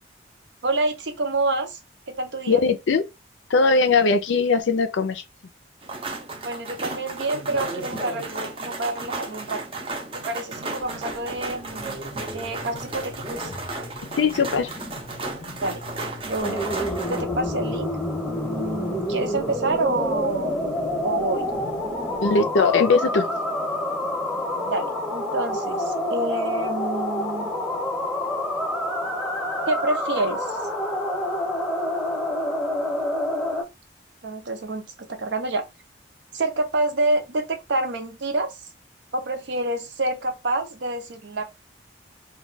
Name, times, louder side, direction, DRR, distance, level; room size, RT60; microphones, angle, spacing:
voice 1, 0.6-1.8 2.1-2.6 6.4-9.6 10.1-12.0 12.3-13.5 15.6-15.8 16.2-16.6 17.1-17.9 18.3-20.6 21.0-21.5 24.6-27.5 29.7-30.7 34.2-35.6 36.3-38.6 39.1-41.4, right 2 dB, 70° right, 0.6 m, -28 dB
voice 2, 2.5-3.0 3.5-5.2 14.2-14.7 22.2-23.3, left 4 dB, 75° left, 0.5 m, -20 dB
sound 1, 5.8-17.2, right 2 dB, 30° right, 0.5 m, -34 dB
sound 2, 10.8-22.4, left 1 dB, 25° left, 0.5 m, -41 dB
sound 3, 16.4-33.6, left 1 dB, ahead, 0.8 m, -27 dB
2.3 x 2.2 x 3.9 m
head